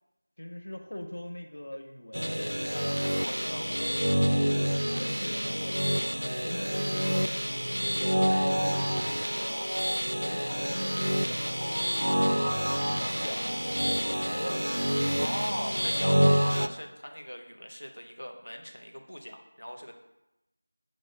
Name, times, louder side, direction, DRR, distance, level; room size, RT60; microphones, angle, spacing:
voice 1, 0.4-3.0 4.8-7.3 7.8-9.7 10.2-11.8 12.4-14.6, left 1 dB, 45° left, 3 dB, 0.7 m, -42 dB
sound 1, 2.1-16.7, equal, 80° right, 0.3 m, -28 dB
voice 2, 3.2-4.0 15.2-19.9, equal, 80° left, 3 dB, 1.0 m, -39 dB
6.2 x 3.0 x 5.7 m, 0.92 s
figure-of-eight pair, 175°, 0 cm